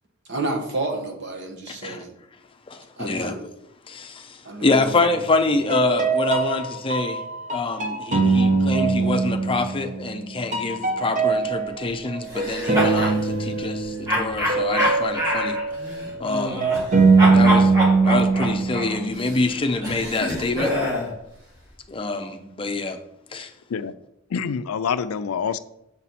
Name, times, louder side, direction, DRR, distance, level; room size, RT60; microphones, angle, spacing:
voice 1, 0.3-2.1 3.0-3.4 4.4-4.7 16.8-16.9 22.3-22.6, right 2 dB, 60° right, 1.3 m, -30 dB
voice 2, 1.7-2.0 2.7-3.3 3.9-7.2 7.5-15.6 16.2-16.7 17.3-17.7 18.0-20.7 21.9-23.0 23.3-23.5, left 3 dB, 25° left, 0.6 m, -26 dB
sound 1, 4.7-5.3 5.7-10.3 10.5-19.3, right 4 dB, 35° right, 0.9 m, -22 dB
sound 2, 12.3-13.2 14.1-16.9 17.2-21.1, equal, 20° right, 2.2 m, -26 dB
voice 3, 24.3-25.6, left 6 dB, 80° left, 0.4 m, -26 dB
7.1 x 4.3 x 4.2 m
head